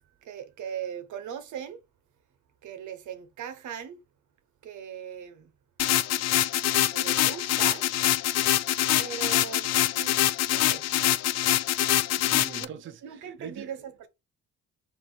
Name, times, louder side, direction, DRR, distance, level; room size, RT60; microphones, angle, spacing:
voice 1, 0.2-1.8 2.6-4.0 4.6-5.5 6.9-7.9 9.0-10.2 10.5-10.9 12.6-12.7 13.0-14.1, right 8 dB, 70° right, 0.9 m, -39 dB
sound 1, 5.8-12.6, left 13 dB, 55° left, 0.4 m, -24 dB
voice 2, 12.2-13.8, right 7 dB, 40° right, 0.5 m, -42 dB
3.6 x 2.6 x 4.3 m
cardioid pair, 75°, 31 cm